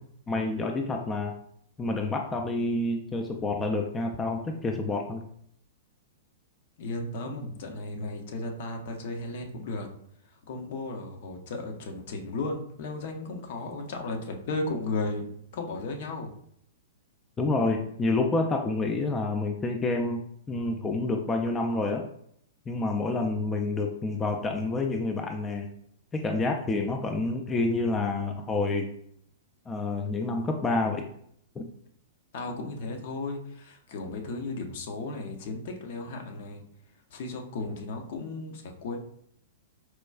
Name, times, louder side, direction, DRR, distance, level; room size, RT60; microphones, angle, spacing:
voice 1, 0.3-1.3 1.8-5.2 17.4-20.2 20.5-22.1 22.7-25.7 26.1-28.9 29.7-31.1 31.6-31.7, left 2 dB, 20° left, 3 dB, 0.3 m, -28 dB
voice 2, 6.8-9.9 10.5-16.3 32.3-36.6 37.1-39.0, left 2 dB, 55° left, 4 dB, 0.6 m, -35 dB
4.4 x 2.2 x 2.3 m, 0.69 s
hypercardioid pair, 110°, 0 cm